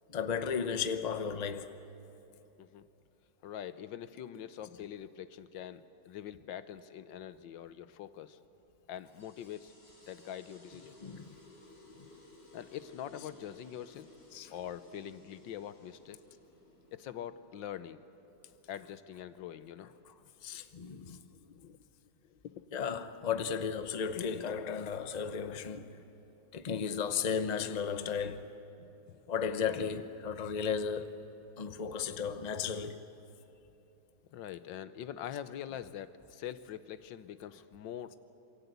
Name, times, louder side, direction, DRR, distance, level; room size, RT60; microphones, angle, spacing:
voice 1, 0.1-1.8 11.0-11.3 12.0-12.1 14.3-14.5 20.4-21.2 22.7-26.0 26.5-28.5 29.3-31.2 31.6-33.0, left 6 dB, 30° left, 0.8 m, -34 dB
voice 2, 3.4-8.4 8.9-9.7 10.1-10.9 12.5-14.1 14.5-16.2 16.9-18.0 18.7-19.9 21.3-21.8 22.2-22.7 29.1-29.2 34.3-38.2, left 10 dB, 90° left, 1.6 m, -44 dB
sound 1, 9.1-20.1, left 2 dB, 60° left, 4.9 m, -59 dB
28.0 x 23.5 x 8.2 m
omnidirectional pair, 2.0 m